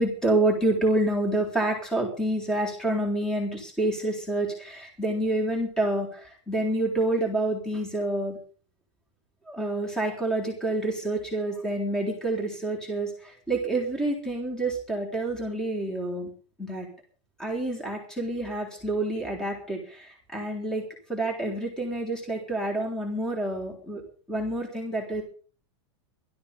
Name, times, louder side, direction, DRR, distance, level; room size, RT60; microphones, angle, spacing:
voice 1, 0.0-8.4 9.5-16.3 16.6-16.9 17.4-20.8 21.1-24.0 24.3-25.2, right 1 dB, 5° left, 1 dB, 3.7 m, -28 dB
16.0 x 13.0 x 5.3 m, 0.40 s
supercardioid pair, 170°, 15 cm